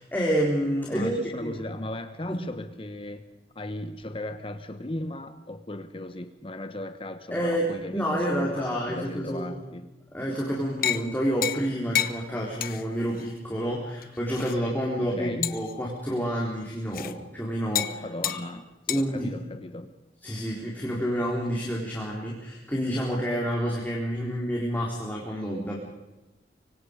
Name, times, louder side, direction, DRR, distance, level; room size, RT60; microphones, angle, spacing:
voice 1, 0.0-1.6 2.3-2.4 7.3-9.5 10.1-18.4 18.9-19.3 20.2-25.8, equal, 10° left, -3 dB, 3.9 m, -29 dB
voice 2, 0.9-3.2 3.5-9.9 15.2-15.7 18.0-19.9, left 1 dB, 30° left, 9 dB, 1.2 m, -36 dB
sound 1, 10.8-11.1 11.4-11.7 11.9-12.2 12.6-12.8 13.2-13.3 14.0-14.6 15.4-15.7 16.9-17.1 17.7-18.0 18.2-18.4 18.9-19.0, left 11 dB, 50° left, 1.1 m, -28 dB
25.0 x 24.5 x 5.2 m, 1.0 s
head